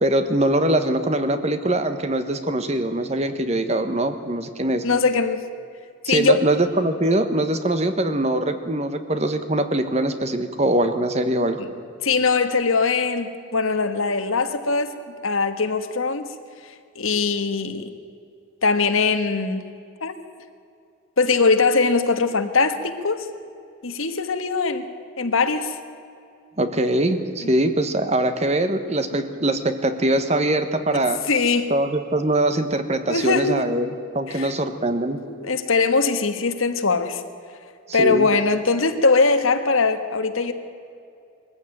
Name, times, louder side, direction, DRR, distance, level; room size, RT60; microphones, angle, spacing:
voice 1, 0.0-4.8 6.0-11.6 26.6-31.2 31.7-35.2 37.9-38.3, right 1 dB, 30° right, 9 dB, 1.2 m, -22 dB
voice 2, 4.8-5.5 6.1-6.4 11.6-11.7 12.0-14.9 15.2-16.3 16.9-17.9 18.6-19.7 20.0-20.1 21.2-23.3 23.8-24.8 25.2-25.7 31.2-31.7 33.1-33.6 34.3-34.5 35.3-37.2 37.9-40.5, left 4 dB, 85° left, 8 dB, 1.5 m, -21 dB
21.5 x 15.0 x 9.1 m, 2.5 s
head